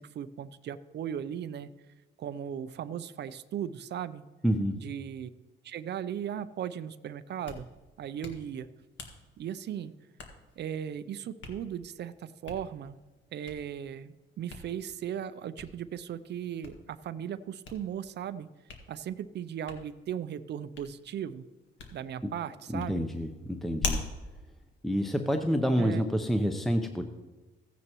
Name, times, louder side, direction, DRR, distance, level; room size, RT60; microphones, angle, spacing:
voice 1, 0.0-1.7 2.2-4.2 4.8-5.3 5.6-7.7 8.0-8.7 9.4-9.9 10.6-13.0 13.3-18.5 18.9-21.4 21.9-23.0 25.8-26.0, right 9 dB, 60° right, 14 dB, 0.5 m, -37 dB
voice 2, 4.4-4.8 22.2-22.3 22.7-24.0 24.8-27.0, equal, ahead, 5 dB, 0.7 m, -28 dB
Hands, 7.2-25.7, left 4 dB, 70° left, 1.8 m, -44 dB
15.0 x 9.6 x 3.0 m, 1.2 s
cardioid pair, 90°, 20 cm